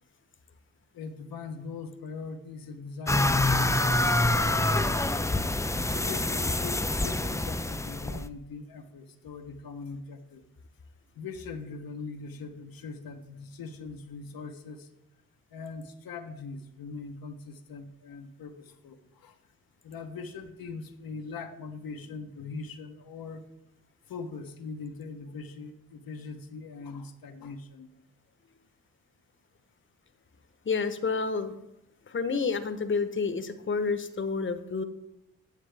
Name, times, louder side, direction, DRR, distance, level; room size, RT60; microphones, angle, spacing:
voice 1, 0.9-5.1 5.9-10.4 11.2-14.9 15.5-19.4 19.8-23.4 24.1-27.9, left 4 dB, 80° left, 6 dB, 0.9 m, -41 dB
sound 1, 3.1-8.3, left 2 dB, 10° left, 0.5 m, -26 dB
voice 2, 30.6-31.5 32.1-34.8, left 4 dB, 35° left, 10 dB, 0.9 m, -29 dB
9.5 x 7.2 x 3.4 m, 0.87 s
supercardioid pair, 45°, 35 cm